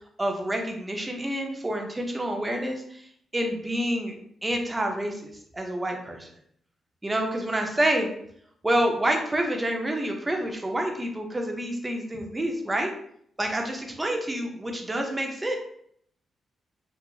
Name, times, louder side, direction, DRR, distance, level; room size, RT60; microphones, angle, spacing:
voice 1, 0.2-3.1 3.3-4.2 4.4-6.3 7.0-8.1 8.6-12.9 13.4-15.6, right 1 dB, 20° right, 2 dB, 0.6 m, -28 dB
2.8 x 2.4 x 2.4 m, 0.67 s
cardioid pair, 75°, 0 cm